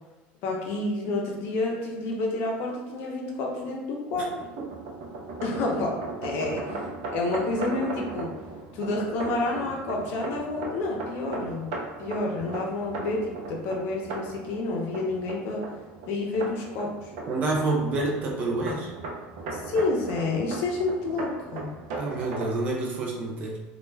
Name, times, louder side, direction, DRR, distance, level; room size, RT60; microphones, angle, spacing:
voice 1, 0.4-4.3 5.4-8.3 8.7-11.7 12.0-15.6 16.1-17.1 19.5-21.8, left 2 dB, 50° left, -1 dB, 0.6 m, -29 dB
sound 1, 4.1-22.6, right 3 dB, 80° right, 0.5 m, -37 dB
voice 2, 17.3-18.9 22.0-23.6, right 2 dB, 30° right, -1 dB, 0.5 m, -28 dB
2.3 x 2.1 x 3.2 m, 1.1 s
cardioid pair, 160°, 5 cm